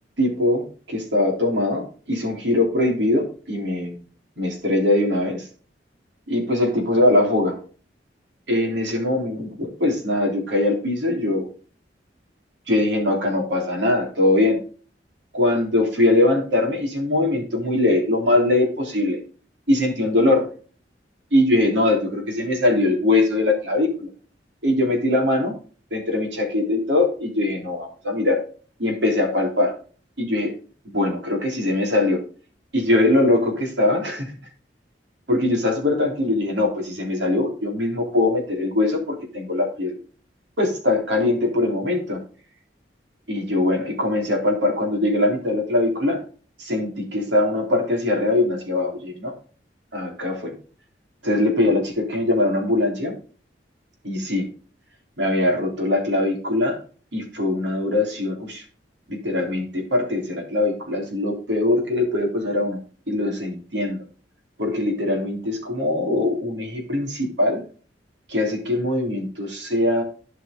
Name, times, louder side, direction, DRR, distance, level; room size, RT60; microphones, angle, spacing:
voice 1, 0.2-4.0 4.4-5.5 6.3-7.6 8.5-11.5 12.7-14.6 15.3-19.2 19.7-20.5 21.3-24.1 24.6-25.5 25.9-28.4 28.8-29.7 30.2-30.5 30.8-32.2 32.7-34.3 35.3-40.0 40.6-42.2 43.3-46.2 46.6-49.3 49.9-50.6 51.2-53.1 54.0-54.5 55.2-56.8 57.1-58.6 59.1-62.8 63.1-64.0 64.6-67.6 68.3-70.0, left 2 dB, 80° right, 2 dB, 3.4 m, -22 dB
12.0 x 5.7 x 3.7 m, 0.39 s
head